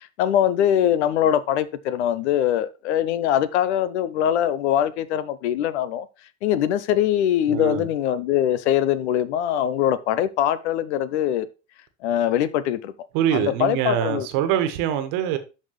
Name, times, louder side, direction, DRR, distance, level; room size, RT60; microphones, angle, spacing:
voice 1, 0.0-6.1 6.4-11.5 12.0-12.9 13.3-14.3, left 10 dB, 70° left, 0.8 m, -22 dB
voice 2, 7.5-7.9 13.1-15.4, right 10 dB, 60° right, 1.5 m, -24 dB
12.0 x 4.2 x 3.2 m
hypercardioid pair, 65°, 35 cm